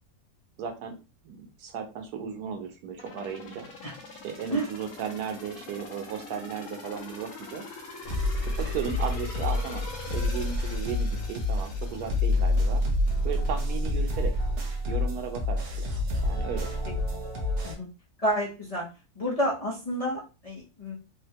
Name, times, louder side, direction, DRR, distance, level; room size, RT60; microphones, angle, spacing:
voice 1, 0.6-1.0 1.2-3.7 4.2-7.6 8.6-12.8 13.2-14.3 14.9-15.9 16.2-16.7, right 7 dB, 85° right, 5 dB, 1.2 m, -35 dB
sound 1, 3.0-13.7 14.1-14.2, left 3 dB, 65° left, 1.0 m, -44 dB
sound 2, 8.0-17.7, left 1 dB, 55° right, 0.7 m, -28 dB
voice 2, 18.2-18.9 19.2-21.0, equal, 35° left, -6 dB, 0.7 m, -29 dB
3.4 x 2.1 x 2.7 m, 0.30 s
omnidirectional pair, 1.6 m